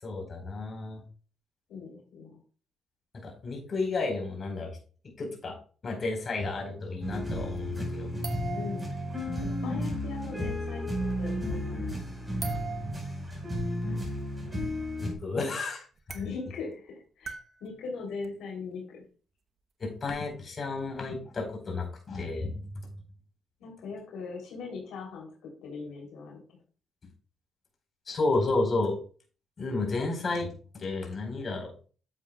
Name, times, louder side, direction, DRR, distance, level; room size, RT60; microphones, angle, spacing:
voice 1, 0.0-1.0 3.2-4.7 5.2-5.6 5.8-8.1 15.0-16.2 19.8-22.6 28.1-29.0 29.6-31.9, left 3 dB, 40° left, 2 dB, 4.5 m, -32 dB
voice 2, 1.7-2.4 8.5-8.8 9.6-11.9 16.1-19.0 23.6-25.3 25.6-26.4, left 4 dB, 80° left, 0 dB, 3.4 m, -40 dB
sound 1, 7.0-15.1, left 1 dB, 10° right, 4.9 m, -33 dB
sound 2, 7.6-7.7 8.2-9.8 12.4-13.2 14.9-15.0 15.2-15.3 16.0-16.3 17.2-17.6 18.2-18.3 22.3-22.4, right 6 dB, 50° right, 1.0 m, -40 dB
11.0 x 7.4 x 2.4 m, 0.37 s
cardioid pair, 90°, 0 cm